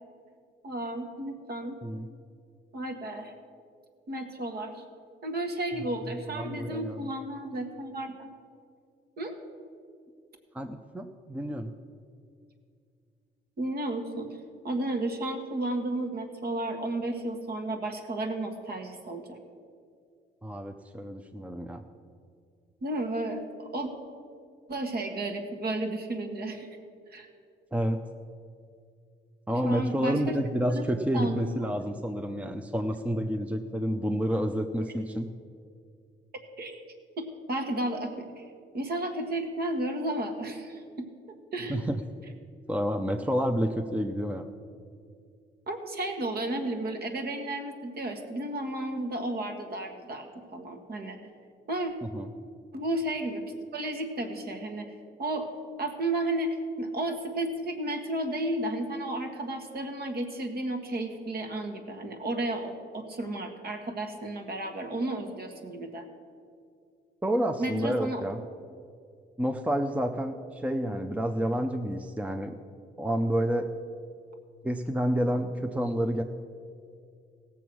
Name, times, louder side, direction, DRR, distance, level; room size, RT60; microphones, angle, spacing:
voice 1, 0.6-1.8 2.7-3.3 4.1-4.8 5.2-8.3 9.2-9.3 13.6-14.3 14.6-19.4 22.8-23.9 24.7-26.7 27.1-27.3 29.6-30.4 31.1-31.7 36.6-36.8 37.2-38.5 38.7-41.1 41.5-41.8 45.7-51.2 51.7-51.9 52.7-53.4 53.7-54.9 55.2-55.5 55.8-66.0 67.6-68.2, right 1 dB, 50° right, 5 dB, 1.7 m, -33 dB
voice 2, 5.7-7.1 10.5-11.7 20.4-21.8 27.7-28.0 29.5-35.3 41.7-42.0 42.7-44.4 52.1-52.3 67.2-68.4 69.4-72.5 73.0-73.7 74.6-76.2, equal, 5° right, 6 dB, 0.6 m, -29 dB
16.5 x 7.1 x 6.2 m, 2.3 s
cardioid pair, 90°, 20 cm